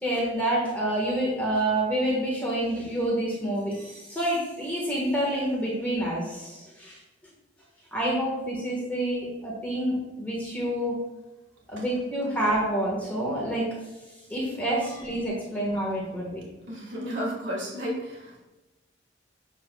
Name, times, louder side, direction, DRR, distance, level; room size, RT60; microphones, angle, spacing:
voice 1, 0.0-7.0 7.9-10.9 11.7-13.6 14.3-16.4, right 1 dB, 10° left, -5 dB, 1.4 m, -28 dB
voice 2, 16.7-18.3, equal, 85° right, -3 dB, 1.8 m, -32 dB
7.4 x 6.2 x 2.3 m, 1.0 s
head